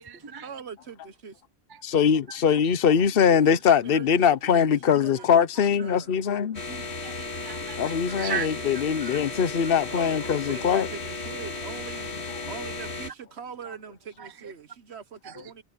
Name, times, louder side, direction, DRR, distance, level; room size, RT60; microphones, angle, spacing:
voice 1, 0.0-1.4 3.2-4.6 4.9-6.1 9.9-12.1 12.4-15.6, right 6 dB, 80° right, 1.4 m, -42 dB
voice 2, 1.8-6.6 7.8-10.9, left 7 dB, 60° left, 1.1 m, -22 dB
sound 1, 6.5-13.1, left 3 dB, 80° left, 2.2 m, -35 dB
voice 3, 6.7-8.5 9.0-9.2 14.2-14.3 15.2-15.3, right 7 dB, 30° right, 0.4 m, -35 dB
omnidirectional pair, 1.1 m